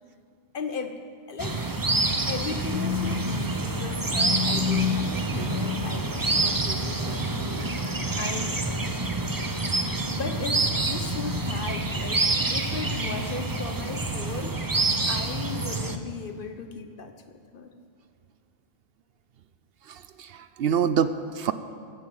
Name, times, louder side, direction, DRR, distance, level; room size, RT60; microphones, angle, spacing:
voice 1, 0.5-1.0 1.3-1.7 2.3-8.6 10.1-14.6 15.0-17.7, left 4 dB, 55° left, 7 dB, 1.1 m, -37 dB
sound 1, 1.4-16.0, right 1 dB, 20° right, 0.7 m, -27 dB
voice 2, 19.9-21.5, right 7 dB, 65° right, 12 dB, 0.8 m, -26 dB
15.0 x 9.2 x 7.8 m, 2.2 s
omnidirectional pair, 1.1 m